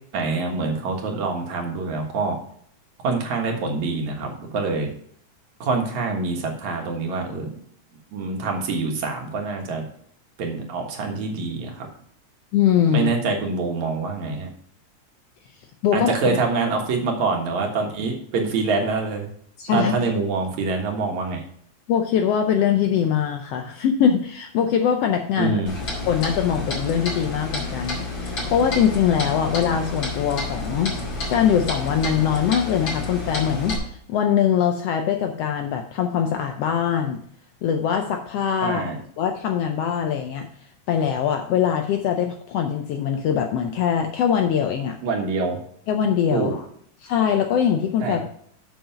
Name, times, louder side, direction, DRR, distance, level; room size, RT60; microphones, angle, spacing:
voice 1, 0.1-2.4 3.0-4.9 5.6-7.6 8.1-9.8 10.4-11.9 12.9-14.5 15.9-19.3 19.7-21.4 25.4-25.7 38.6-39.0 45.0-45.6 46.3-46.5 48.0-48.3, right 4 dB, 75° right, 1 dB, 2.8 m, -25 dB
voice 2, 12.5-13.1 15.8-16.1 19.6-20.0 21.9-25.5 26.1-30.9 31.3-37.2 37.6-38.9 39.2-40.5 40.9-45.0 45.9-46.6 47.0-48.3, left 8 dB, 75° left, 5 dB, 1.5 m, -22 dB
Clock, 25.7-33.8, left 2 dB, 40° left, 2.9 m, -30 dB
7.3 x 6.0 x 5.6 m, 0.63 s
omnidirectional pair, 3.4 m